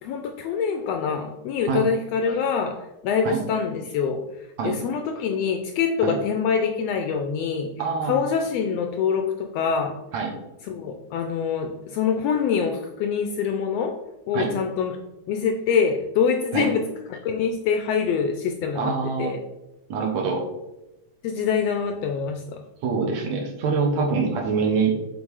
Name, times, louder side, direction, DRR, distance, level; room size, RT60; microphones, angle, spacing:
voice 1, 0.0-2.8 3.0-7.7 8.0-10.0 10.7-13.9 14.3-15.0 15.3-16.8 17.1-19.4 21.2-22.6, left 6 dB, 80° left, 4 dB, 1.5 m, -25 dB
voice 2, 7.8-8.2 10.1-10.3 14.3-14.5 16.5-16.7 18.8-19.3 19.9-20.5 22.8-25.0, right 5 dB, 70° right, 1 dB, 2.3 m, -24 dB
7.3 x 3.5 x 4.7 m, 0.97 s
omnidirectional pair, 3.3 m